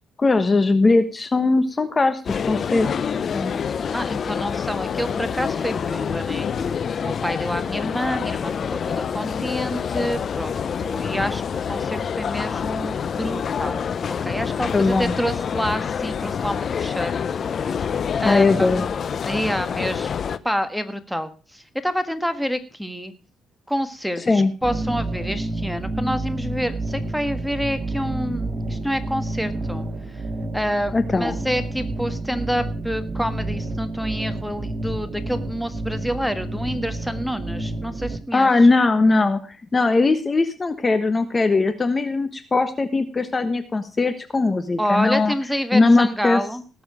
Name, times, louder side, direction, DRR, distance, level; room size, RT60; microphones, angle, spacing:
voice 1, 0.2-2.9 3.3-3.7 14.7-15.1 18.2-18.8 24.2-24.5 30.9-31.4 38.3-39.4 39.7-45.3 45.7-46.4, left 3 dB, 30° left, 10 dB, 1.2 m, -19 dB
sound 1, 2.3-20.4, left 7 dB, 50° left, 0.7 m, -27 dB
voice 2, 3.9-6.5 7.0-13.8 14.2-17.1 18.2-18.7 19.3-23.1 23.7-29.9 30.5-38.5 44.8-46.8, equal, ahead, 9 dB, 1.6 m, -28 dB
sound 2, 24.6-38.2, right 2 dB, 40° right, 3.2 m, -29 dB
18.5 x 7.1 x 5.0 m, 0.34 s
cardioid pair, 90°, 0 cm